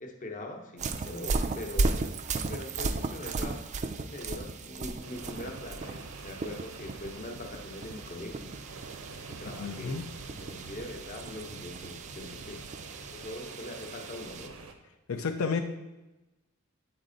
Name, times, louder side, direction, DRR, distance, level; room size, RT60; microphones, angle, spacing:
voice 1, 0.0-2.2 2.5-3.6 4.0-8.6 9.2-10.0 10.3-12.6 13.1-14.5, left 1 dB, 40° left, 2 dB, 0.8 m, -42 dB
sound 1, 0.8-14.5, right 3 dB, 35° right, 0.3 m, -36 dB
sound 2, 5.0-14.7, right 3 dB, 90° right, 0.7 m, -46 dB
voice 2, 9.6-10.1 15.1-15.6, left 5 dB, 80° left, 4 dB, 0.5 m, -31 dB
7.9 x 4.2 x 3.9 m, 1.1 s
head